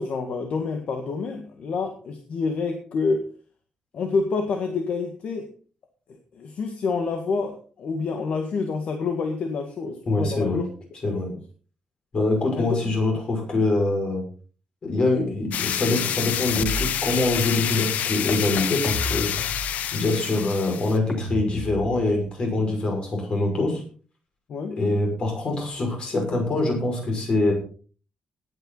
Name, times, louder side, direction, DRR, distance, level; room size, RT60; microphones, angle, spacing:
voice 1, 0.0-3.3 3.9-5.5 6.1-10.6 11.0-11.2 12.6-12.8 24.5-24.8, left 4 dB, 55° left, 4 dB, 1.8 m, -28 dB
voice 2, 10.1-10.6 11.0-11.3 12.1-14.2 14.8-19.3 19.9-23.8 24.8-27.5, left 2 dB, 40° left, 2 dB, 6.0 m, -24 dB
sound 1, 15.5-21.0, left 10 dB, 85° left, 0.7 m, -28 dB
sound 2, 16.6-17.6 18.8-20.1 21.1-22.3, equal, 5° left, 2.6 m, -34 dB
18.5 x 9.3 x 4.1 m, 0.40 s
wide cardioid pair, 170°, 3 cm